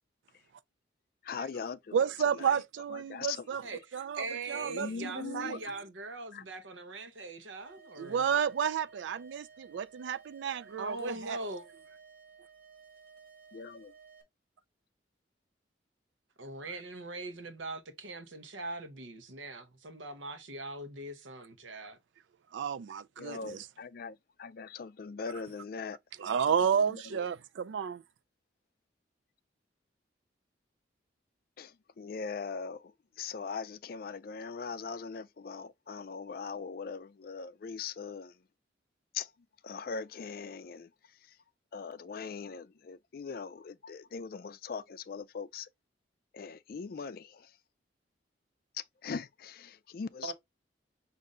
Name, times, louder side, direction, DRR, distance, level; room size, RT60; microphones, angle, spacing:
voice 1, 1.2-2.0 2.4-2.5 2.9-3.4 4.5-5.7 6.3-6.4 13.5-13.9 23.2-26.0 26.3-26.4 26.9-27.2 31.6-32.9 33.2-38.3 39.1-39.3 39.6-40.9 41.7-45.7 46.3-47.5 49.0-50.3, left 5 dB, 50° left, 0.4 m, -41 dB
voice 2, 1.9-3.6 3.9-5.6 8.0-11.4 22.5-23.7 26.2-27.4 27.7-28.0, right 7 dB, 75° right, 0.3 m, -31 dB
voice 3, 3.6-8.5 10.8-11.7 16.4-22.0 50.2-50.3, right 2 dB, 90° right, 0.9 m, -41 dB
sound 1, 7.6-14.2, right 3 dB, 55° right, 1.1 m, -56 dB
5.3 x 2.6 x 3.6 m
head